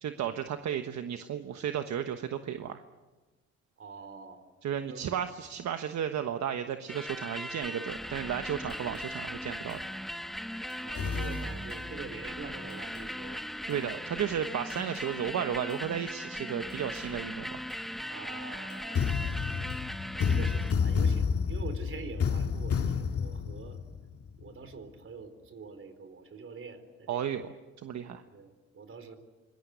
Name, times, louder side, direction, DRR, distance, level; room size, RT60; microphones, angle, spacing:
voice 1, 0.0-2.8 4.6-9.8 13.7-17.6 20.2-20.5 27.1-28.2, right 9 dB, 65° right, 7 dB, 1.3 m, -34 dB
voice 2, 3.8-4.4 4.8-5.1 10.8-13.4 18.1-19.8 20.1-23.8 24.4-27.4 28.3-29.2, right 4 dB, 45° right, 9 dB, 4.1 m, -45 dB
sound 1, 6.9-20.7, equal, ahead, 0.7 m, -39 dB
sound 2, 8.7-9.0 9.7-9.8 10.7-12.0 12.7-13.0 13.7-13.8 14.7-15.0 15.7-15.8 16.7-17.0 17.7-17.8 18.7-24.5, left 6 dB, 50° left, 2.1 m, -30 dB
25.5 x 21.0 x 8.3 m, 1.2 s
cardioid pair, 90°, 30 cm